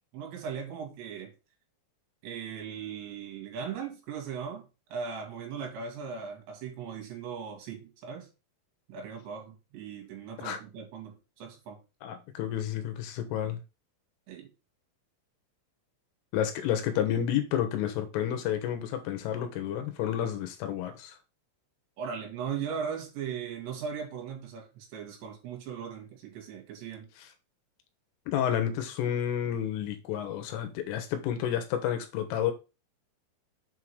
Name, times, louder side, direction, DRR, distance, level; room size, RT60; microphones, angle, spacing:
voice 1, 0.1-1.3 2.2-8.3 8.9-11.8 14.3-14.5 22.0-27.1, right 7 dB, 65° right, 3.8 m, -38 dB
voice 2, 12.0-13.6 16.3-21.2 28.3-32.5, left 10 dB, 80° left, 3.6 m, -30 dB
7.8 x 3.7 x 4.7 m
omnidirectional pair, 6.0 m